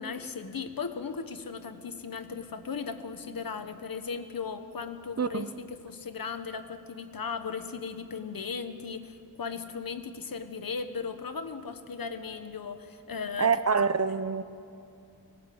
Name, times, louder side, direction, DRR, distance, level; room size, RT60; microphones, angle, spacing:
voice 1, 0.0-13.5, left 5 dB, 80° left, 1.5 m, -37 dB
voice 2, 5.2-5.6 13.4-14.4, right 5 dB, 45° right, 0.9 m, -26 dB
24.5 x 20.5 x 8.0 m
wide cardioid pair, 100°, 34 cm